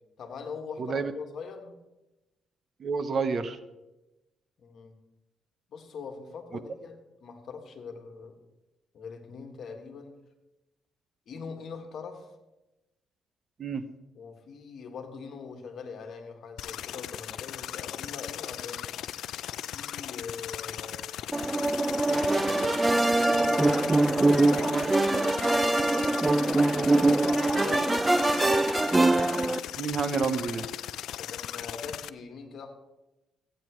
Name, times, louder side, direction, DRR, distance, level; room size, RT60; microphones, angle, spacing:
voice 1, 0.2-1.8 4.6-5.0 5.7-8.4 8.9-10.2 11.3-12.3 14.2-18.9 19.7-21.1 22.4-22.8 23.2-24.0 27.5-28.2 31.2-32.8, left 5 dB, 65° left, 4 dB, 1.7 m, -42 dB
voice 2, 0.8-1.1 2.8-3.6 13.6-13.9 29.8-30.7, right 5 dB, 50° right, 11 dB, 0.8 m, -29 dB
sound 1, 16.6-32.1, left 11 dB, 80° left, 0.3 m, -38 dB
sound 2, 21.3-29.6, right 2 dB, 15° right, 0.4 m, -23 dB
15.0 x 9.1 x 3.1 m, 1.0 s
cardioid pair, 90°, 0 cm